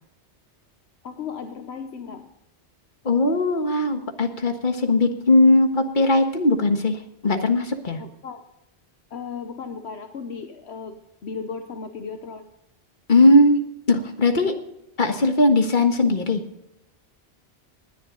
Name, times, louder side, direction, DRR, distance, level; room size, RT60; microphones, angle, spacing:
voice 1, 1.0-2.3 8.0-8.4 9.1-10.9 11.2-12.5, left 5 dB, 70° left, 7 dB, 1.2 m, -35 dB
voice 2, 3.0-7.0 7.2-8.0 13.1-13.6 13.9-14.5 15.0-16.4, left 2 dB, 45° left, 5 dB, 1.7 m, -19 dB
19.0 x 10.5 x 3.9 m, 0.84 s
omnidirectional pair, 1.1 m